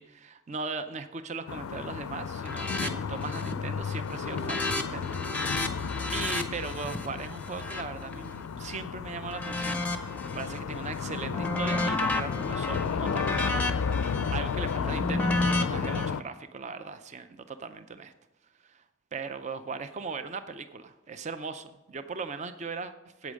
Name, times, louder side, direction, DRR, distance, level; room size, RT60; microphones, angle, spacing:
voice 1, 0.0-13.8 14.3-18.1 18.6-18.8 19.1-23.3, right 4 dB, 35° right, 10 dB, 0.4 m, -39 dB
sound 1, 1.5-16.2, left 6 dB, 85° left, 0.4 m, -33 dB
sound 2, 2.4-2.9 3.2-3.6 3.9-8.8 9.3-10.6 11.0-16.1, left 2 dB, 5° left, 0.6 m, -32 dB
8.5 x 8.1 x 6.4 m, 1.0 s
head